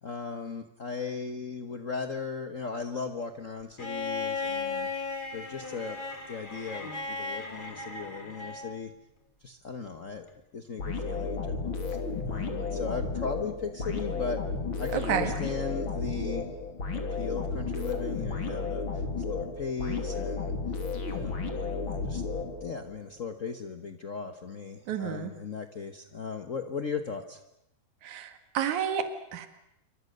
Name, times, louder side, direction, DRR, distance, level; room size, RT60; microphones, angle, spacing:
voice 1, 0.0-5.1 5.3-6.0 6.3-8.9 9.4-10.3 10.5-12.0 12.3-14.4 14.8-16.4 16.9-20.5 21.1-22.2 22.6-27.4, left 5 dB, 65° left, 6 dB, 0.7 m, -37 dB
Bowed string instrument, 3.8-8.8 10.3-10.4, left 4 dB, 15° left, 2.3 m, -36 dB
sound 1, 10.8-23.0, left 4 dB, 40° left, 3.4 m, -33 dB
voice 2, 14.9-15.3 24.9-25.3 28.0-29.5, right 8 dB, 70° right, 8 dB, 3.1 m, -30 dB
28.0 x 24.5 x 6.7 m, 0.81 s
omnidirectional pair, 3.6 m